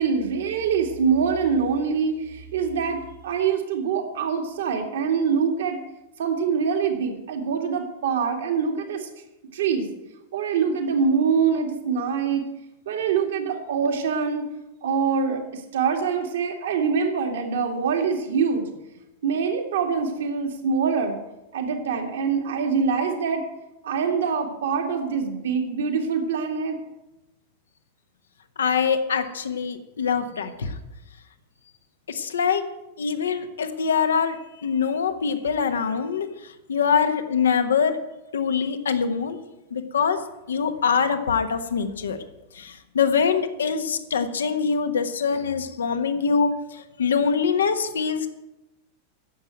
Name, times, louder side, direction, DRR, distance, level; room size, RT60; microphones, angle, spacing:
voice 1, 0.0-5.8 6.2-9.1 9.5-9.9 10.3-12.5 12.9-14.5 14.8-18.6 19.2-21.2 21.5-23.4 23.8-26.8, right 6 dB, 60° right, 3 dB, 2.2 m, -24 dB
voice 2, 28.6-30.7 32.1-32.6 33.0-34.4 34.6-36.3 36.7-38.0 38.3-39.4 39.7-40.2 40.5-42.2 42.5-48.3, left 6 dB, 65° left, 8 dB, 1.2 m, -24 dB
10.0 x 7.8 x 9.1 m, 0.94 s
figure-of-eight pair, 90°, 0 cm